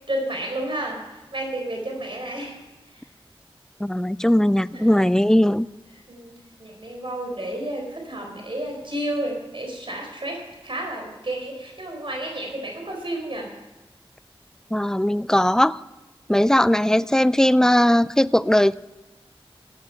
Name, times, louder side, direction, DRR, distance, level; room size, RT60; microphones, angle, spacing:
voice 1, 0.1-2.6 2.9-3.1 4.7-5.1 6.1-6.3 6.6-13.5, right 1 dB, 60° right, 1 dB, 4.0 m, -31 dB
voice 2, 3.8-5.7 14.7-15.8 16.3-18.7, left 1 dB, 5° left, 17 dB, 0.4 m, -19 dB
15.0 x 8.7 x 5.7 m, 1.1 s
wide cardioid pair, 45°, 10 cm